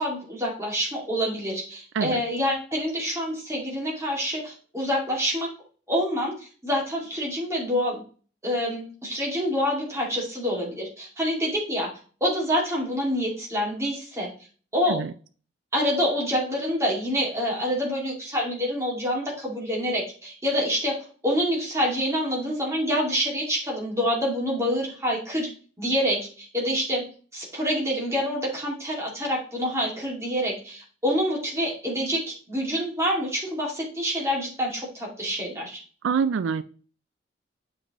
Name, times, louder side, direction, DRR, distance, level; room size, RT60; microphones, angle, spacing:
voice 1, 0.0-5.5 5.9-8.0 8.4-11.9 12.2-14.3 14.7-15.0 15.7-25.5 25.8-27.0 27.3-35.8, equal, 15° right, -2 dB, 2.3 m, -27 dB
voice 2, 36.0-36.6, right 6 dB, 80° right, 14 dB, 0.4 m, -25 dB
8.0 x 6.0 x 3.0 m, 0.40 s
head